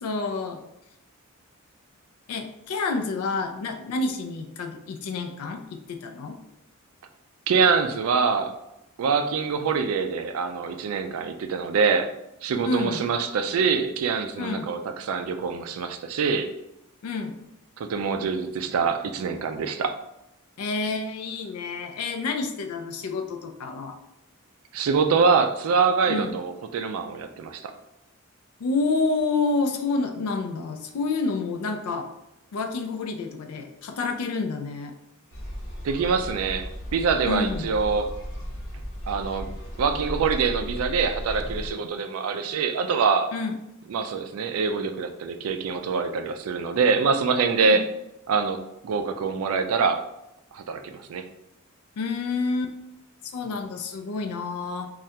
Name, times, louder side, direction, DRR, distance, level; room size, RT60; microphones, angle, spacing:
voice 1, 0.0-0.6 2.3-6.4 12.6-13.0 14.4-14.7 17.0-17.3 20.6-24.0 26.1-26.4 28.6-32.1 32.5-34.9 37.3-37.7 43.3-43.5 47.6-47.8 52.0-53.0 53.3-54.9, left 3 dB, 90° left, 6 dB, 0.4 m, -29 dB
voice 2, 7.5-8.5 9.0-12.1 12.4-16.5 17.8-19.9 24.7-27.7 35.8-38.1 39.1-39.5 39.8-43.3 43.9-47.8 48.3-50.0 50.5-51.2, right 5 dB, 75° right, 7 dB, 0.3 m, -24 dB
sound 1, 35.3-41.7, equal, 60° left, 1.0 m, -35 dB
3.2 x 2.4 x 2.7 m, 0.85 s
head